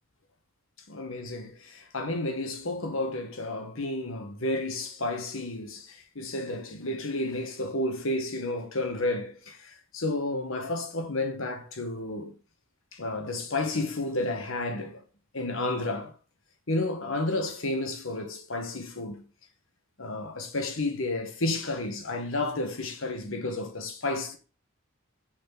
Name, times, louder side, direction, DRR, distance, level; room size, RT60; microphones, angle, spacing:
voice 1, 0.9-12.3 12.9-15.0 15.3-16.1 16.7-19.2 20.0-24.4, left 2 dB, 75° left, 1.6 m, -31 dB
6.2 x 4.4 x 6.0 m
head